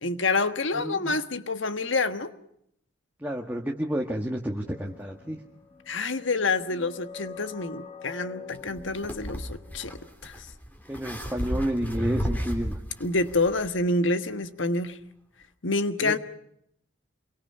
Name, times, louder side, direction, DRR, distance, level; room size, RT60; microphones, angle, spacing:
voice 1, 0.0-2.3 5.9-10.5 13.0-15.0 15.6-16.2, left 3 dB, 75° left, 1.4 m, -27 dB
voice 2, 0.7-1.1 3.2-5.4 10.9-12.8 16.0-16.2, equal, 10° right, 1.6 m, -30 dB
sound 1, 4.7-10.1, left 5 dB, 25° left, 1.7 m, -45 dB
sound 2, 8.5-13.7, equal, 10° left, 3.1 m, -34 dB
27.5 x 23.5 x 5.7 m
head